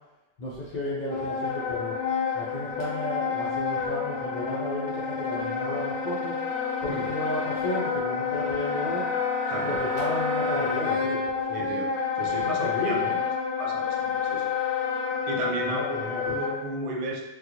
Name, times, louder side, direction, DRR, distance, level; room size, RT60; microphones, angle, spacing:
voice 1, 0.4-2.0 2.3-6.4 6.8-9.1 9.6-11.6 12.3-13.2 15.6-16.4, left 1 dB, 45° left, -8 dB, 0.6 m, -33 dB
Wind instrument woodwind instrument, 1.1-16.6, left 5 dB, 70° left, 0.9 m, -29 dB
voice 2, 9.5-9.8 11.5-11.9 12.2-13.2 13.6-14.5 15.3-17.3, right 2 dB, 55° right, 0 dB, 0.4 m, -34 dB
3.8 x 2.3 x 2.9 m, 1.0 s
omnidirectional pair, 1.2 m